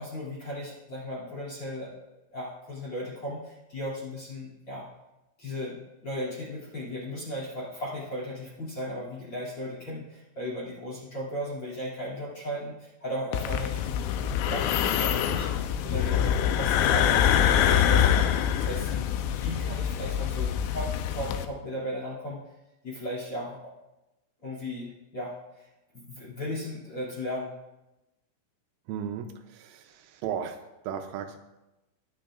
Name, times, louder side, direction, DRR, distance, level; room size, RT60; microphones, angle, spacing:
voice 1, 0.0-1.9 2.3-4.8 5.4-15.5 15.8-22.4 22.8-23.7 24.4-25.7 25.9-27.5, equal, 35° left, -4 dB, 2.5 m, -36 dB
sound 1, 13.3-21.5, left 9 dB, 85° left, 2.7 m, -25 dB
voice 2, 28.9-31.4, right 8 dB, 80° right, 6 dB, 3.2 m, -36 dB
20.5 x 8.8 x 2.5 m, 0.97 s
omnidirectional pair, 6.0 m